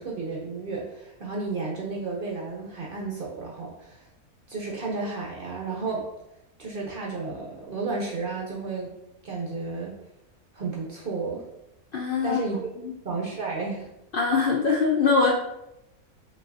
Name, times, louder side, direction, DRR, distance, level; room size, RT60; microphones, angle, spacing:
voice 1, 0.0-4.1 4.5-6.1 6.6-8.9 9.2-10.0 10.5-11.4 12.2-12.6 13.0-13.9, right 3 dB, 55° right, -2 dB, 0.6 m, -32 dB
voice 2, 11.9-12.4 12.8-12.9 14.1-15.3, left 4 dB, 90° left, -1 dB, 0.4 m, -22 dB
5.2 x 3.1 x 2.6 m, 0.88 s
omnidirectional pair, 1.6 m